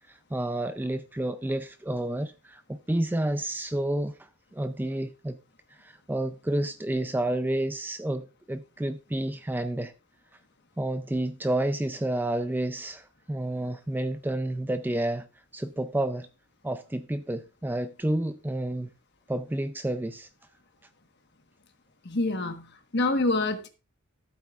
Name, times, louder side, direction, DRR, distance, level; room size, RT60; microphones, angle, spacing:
voice 1, 0.1-5.4 5.7-9.9 10.8-15.3 15.5-16.3 16.6-18.9 19.3-20.3, right 1 dB, 10° right, 0.4 m, -30 dB
voice 2, 22.0-23.7, left 2 dB, 50° left, 1.3 m, -27 dB
14.5 x 8.5 x 2.4 m
head